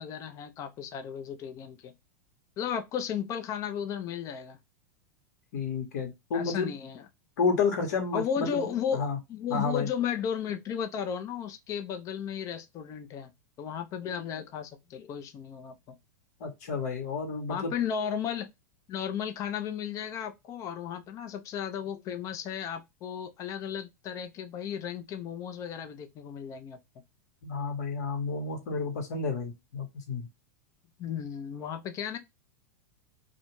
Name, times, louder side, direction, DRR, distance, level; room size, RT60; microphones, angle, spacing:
voice 1, 0.0-1.9 2.6-4.6 6.3-7.1 8.1-13.3 13.6-16.0 17.5-18.5 18.9-26.8 31.0-32.2, left 8 dB, 35° left, 0.6 m, -34 dB
voice 2, 5.5-6.7 7.4-9.2 9.5-9.9 16.4-17.7 27.4-30.3, left 4 dB, 70° left, 1.1 m, -31 dB
2.4 x 2.2 x 3.0 m
hypercardioid pair, 110°, 9 cm